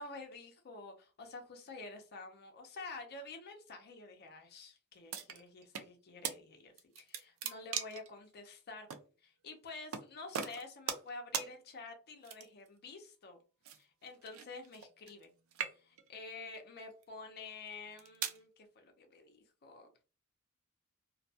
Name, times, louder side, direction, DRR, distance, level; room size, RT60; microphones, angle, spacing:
voice 1, 0.0-8.9 9.2-13.4 13.8-15.3 15.7-19.9, left 3 dB, 45° left, 3 dB, 0.5 m, -49 dB
sound 1, 5.1-5.9 6.2-6.4 6.8-8.1 8.9-9.0 9.9-10.1 10.3-11.1 11.3-11.5 12.2-12.7 13.6-15.3 15.5-16.1 16.8-17.0 17.7-18.4, right 8 dB, 65° right, 0.4 m, -40 dB
2.3 x 2.2 x 2.7 m, 0.35 s
head